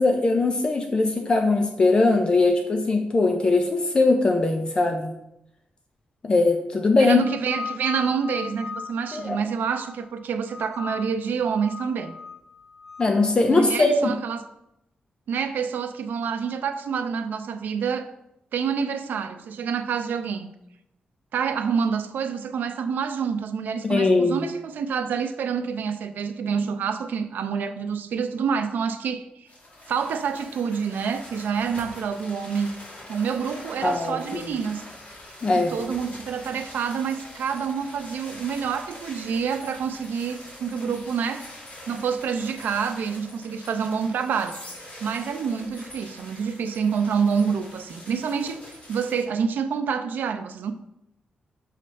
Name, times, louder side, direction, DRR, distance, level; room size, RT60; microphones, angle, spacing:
voice 1, 0.0-5.1 6.2-7.2 9.1-9.4 13.0-14.1 23.8-24.4 33.8-34.4 35.4-35.7, left 3 dB, 30° left, 0.5 m, -21 dB
voice 2, 7.0-12.1 13.5-14.4 15.3-18.1 18.5-20.5 21.3-29.2 29.9-32.7 33.1-34.8 35.5-41.5 41.9-44.6 45.0-48.6 48.9-50.7, right 6 dB, 80° right, 0.5 m, -27 dB
sound 1, 7.2-10.1 10.5-11.2 11.6-13.2, left 5 dB, 10° right, 0.9 m, -38 dB
sound 2, 29.5-49.2, left 1 dB, 45° left, 2.3 m, -44 dB
6.6 x 3.2 x 5.3 m
wide cardioid pair, 155°, 3 cm